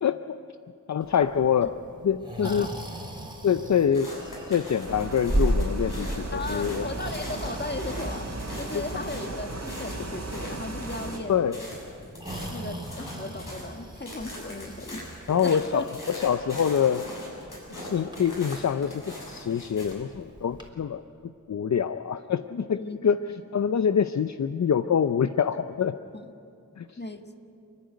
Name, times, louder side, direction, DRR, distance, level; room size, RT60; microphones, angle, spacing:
voice 1, 0.0-0.4 0.9-1.7 2.0-2.7 3.4-4.2 4.5-6.8 8.7-8.8 11.3-11.6 15.3-17.0 17.8-23.2 23.5-26.0 26.8-26.9, left 8 dB, 60° left, 11 dB, 0.6 m, -25 dB
Breathing, 1.0-20.7, right 1 dB, 15° right, 3.6 m, -37 dB
sound 1, 3.9-13.7 14.1-19.9, left 1 dB, 80° left, 6.8 m, -41 dB
sound 2, 4.9-11.2, right 2 dB, 55° right, 3.2 m, -36 dB
voice 2, 6.3-8.3 8.6-11.4 12.5-15.1 15.4-15.9 22.7-23.1 23.4-23.6 26.1-26.3 27.0-27.4, left 2 dB, 35° left, 6 dB, 1.6 m, -36 dB
29.5 x 10.5 x 9.3 m, 2.6 s
cardioid pair, 45°, 32 cm